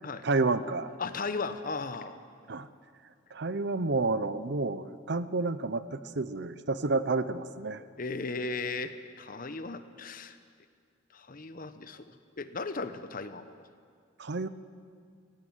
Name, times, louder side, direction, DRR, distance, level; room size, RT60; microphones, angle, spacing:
voice 1, 0.2-0.9 2.5-2.7 3.3-7.8 14.2-14.5, right 3 dB, 60° right, 14 dB, 0.7 m, -30 dB
voice 2, 1.0-2.2 8.0-10.4 11.1-13.6, left 3 dB, 45° left, 11 dB, 1.0 m, -36 dB
17.5 x 16.5 x 9.5 m, 2.1 s
head